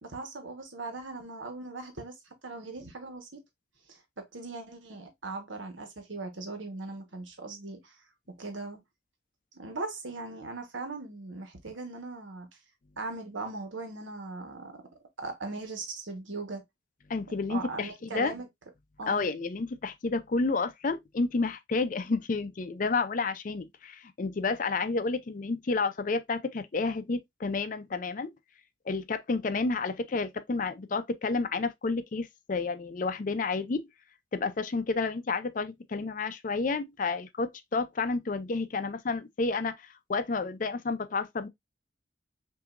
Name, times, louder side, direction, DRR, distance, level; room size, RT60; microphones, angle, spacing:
voice 1, 0.0-2.1 2.4-3.4 4.2-7.9 8.4-8.8 9.5-12.5 13.0-14.8 15.2-16.6 17.5-18.5 19.0-19.3, right 3 dB, 85° right, 1.3 m, -39 dB
voice 2, 17.1-18.3 19.1-28.3 28.9-33.8 34.3-41.5, left 3 dB, 45° left, 0.4 m, -30 dB
5.7 x 2.7 x 2.5 m
head